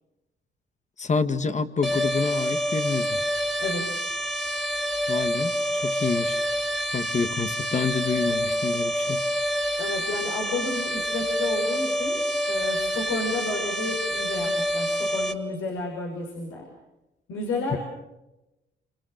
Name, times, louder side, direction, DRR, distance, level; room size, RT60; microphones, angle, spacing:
voice 1, 1.0-3.2 5.1-6.4 6.9-9.2 17.7-17.8, left 5 dB, 35° left, 10 dB, 2.0 m, -28 dB
sound 1, 1.8-15.3, equal, ahead, 3.1 m, -27 dB
voice 2, 3.6-4.0 9.8-12.2 12.5-16.7 17.3-17.8, left 2 dB, 85° left, 0 dB, 6.3 m, -31 dB
28.5 x 27.5 x 6.7 m, 0.97 s
cardioid pair, 90°, 20 cm